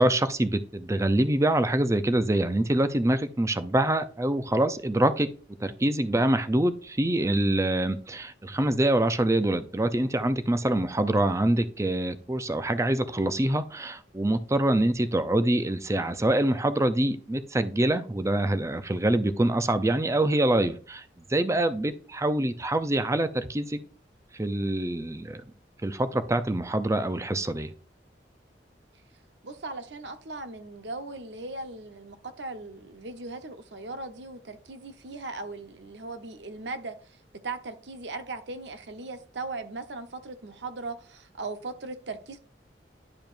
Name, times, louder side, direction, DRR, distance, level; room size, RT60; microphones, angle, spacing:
voice 1, 0.0-5.3 5.6-21.0 21.3-23.8 24.3-25.4 25.8-27.7, right 1 dB, 15° right, 0.6 m, -25 dB
voice 2, 29.4-37.0 37.4-42.4, right 3 dB, 85° right, 1.0 m, -38 dB
10.5 x 5.0 x 2.6 m
head